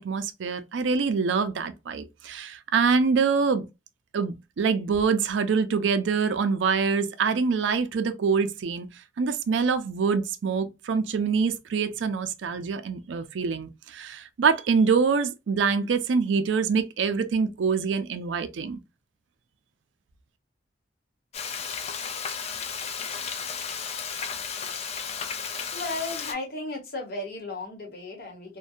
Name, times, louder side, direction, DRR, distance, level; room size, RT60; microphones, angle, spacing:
voice 1, 0.0-3.7 4.1-8.9 9.2-18.8, right 5 dB, 70° right, 0.4 m, -25 dB
Frying (food), 21.3-26.3, left 6 dB, 35° left, 0.4 m, -33 dB
voice 2, 25.7-28.6, left 2 dB, 55° left, 1.0 m, -35 dB
2.6 x 2.2 x 2.3 m
head